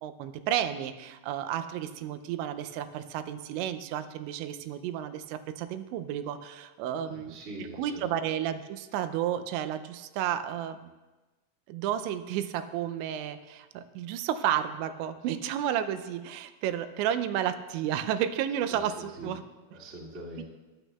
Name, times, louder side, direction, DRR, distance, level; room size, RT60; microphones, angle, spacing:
voice 1, 0.0-7.4 7.8-10.9 11.7-19.4 20.4-20.5, right 10 dB, 85° right, 10 dB, 2.8 m, -32 dB
voice 2, 6.9-8.1 18.7-18.8 19.2-19.3 19.7-20.4, right 1 dB, 30° right, -6 dB, 1.3 m, -43 dB
15.0 x 10.5 x 2.3 m, 1.2 s
omnidirectional pair, 5.1 m